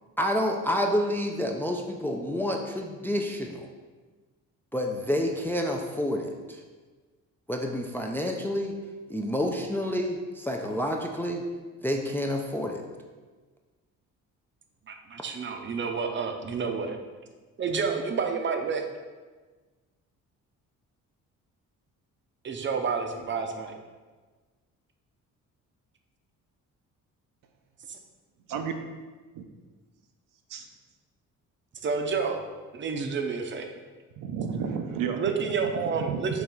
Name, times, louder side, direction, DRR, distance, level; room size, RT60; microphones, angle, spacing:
voice 1, 0.2-3.7 4.7-6.6 7.5-8.8 9.1-11.4 11.8-12.8, equal, 5° left, 1 dB, 0.3 m, -29 dB
voice 2, 14.9-17.0 17.6-18.8 22.4-23.7 27.9-28.0 31.8-32.4 32.7-33.7 35.2-36.4, right 5 dB, 35° right, 5 dB, 0.6 m, -29 dB
voice 3, 34.2-36.4, right 6 dB, 80° right, 5 dB, 0.6 m, -32 dB
3.9 x 3.1 x 4.4 m, 1.4 s
cardioid pair, 95°, 32 cm